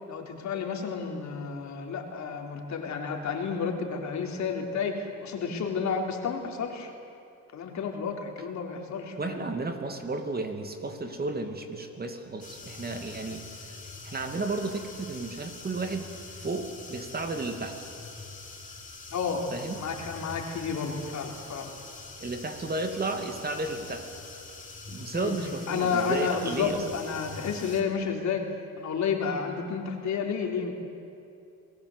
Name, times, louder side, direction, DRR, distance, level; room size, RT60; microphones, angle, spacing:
voice 1, 0.1-6.9 7.5-9.5 19.1-19.5 19.8-21.8 25.1-25.4 25.7-28.5 28.8-30.7, left 6 dB, 60° left, 2 dB, 3.9 m, -31 dB
voice 2, 9.2-13.7 14.0-16.1 16.3-17.8 19.5-19.8 22.2-24.1 24.9-26.8, right 3 dB, 30° right, 5 dB, 2.6 m, -33 dB
sound 1, 12.4-27.8, left 3 dB, 25° left, 4.2 m, -44 dB
29.5 x 20.0 x 8.1 m, 2.6 s
cardioid pair, 95°, 32 cm